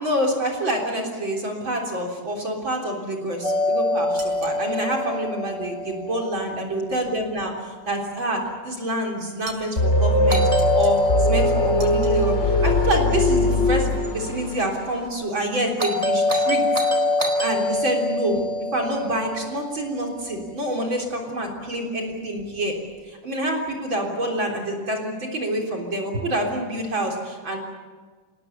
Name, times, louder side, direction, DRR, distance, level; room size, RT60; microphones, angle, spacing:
voice 1, 0.0-7.5 7.9-10.5 10.7-16.8 17.4-18.4 18.7-22.7 23.1-27.6, right 1 dB, 35° right, 0 dB, 4.2 m, -27 dB
Doorbell, 3.4-7.4 10.3-14.5 15.8-20.2, left 2 dB, 10° right, 3.3 m, -26 dB
sound 1, 4.2-4.6 9.4-9.8 10.6-11.2 11.8-12.3, right 4 dB, 75° right, 7.4 m, -41 dB
sound 2, 9.8-14.8, left 1 dB, 25° left, 2.4 m, -21 dB
27.0 x 19.0 x 8.4 m, 1.4 s
omnidirectional pair, 3.8 m